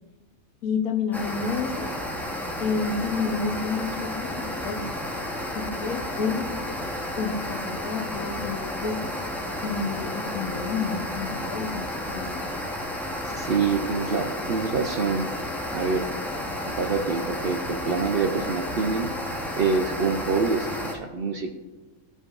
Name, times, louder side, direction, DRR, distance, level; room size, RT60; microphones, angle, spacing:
voice 1, 0.6-1.9 2.6-4.8 5.5-6.6 7.2-9.1 9.6-12.4, left 5 dB, 85° left, 3 dB, 1.4 m, -30 dB
sound 1, 1.1-20.9, left 1 dB, ahead, 0.5 m, -32 dB
voice 2, 13.2-15.3 15.7-16.1 16.7-19.1 19.6-21.5, right 4 dB, 60° right, 4 dB, 0.6 m, -26 dB
14.5 x 5.3 x 2.4 m, 1.2 s
omnidirectional pair, 1.5 m